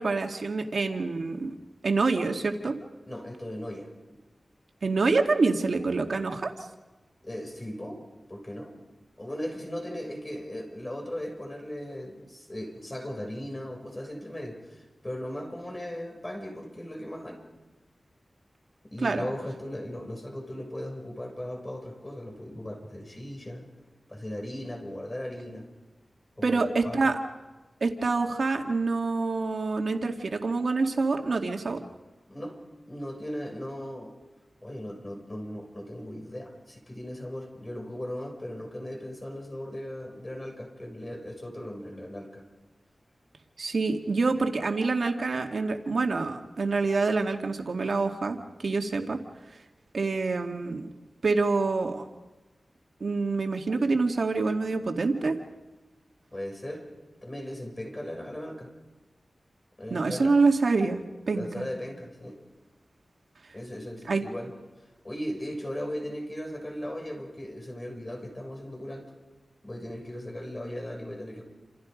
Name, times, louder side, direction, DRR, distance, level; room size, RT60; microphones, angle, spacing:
voice 1, 0.0-1.6 1.8-2.7 4.8-6.5 19.0-19.3 26.4-27.2 27.8-31.8 43.6-49.2 49.9-50.9 51.2-52.1 53.0-55.4 59.9-61.7 64.1-64.2, right 3 dB, 75° right, 4 dB, 2.2 m, -26 dB
voice 2, 3.1-3.9 7.2-8.7 9.2-17.4 18.9-23.6 24.1-25.7 26.4-27.1 32.3-32.6 32.9-34.1 34.6-42.4 56.3-56.9 57.2-58.7 59.8-60.3 61.3-62.4 63.5-64.5 65.0-69.1 69.6-71.4, equal, 30° left, 3 dB, 6.7 m, -37 dB
29.0 x 27.5 x 5.3 m, 1.2 s
wide cardioid pair, 65°, 0 cm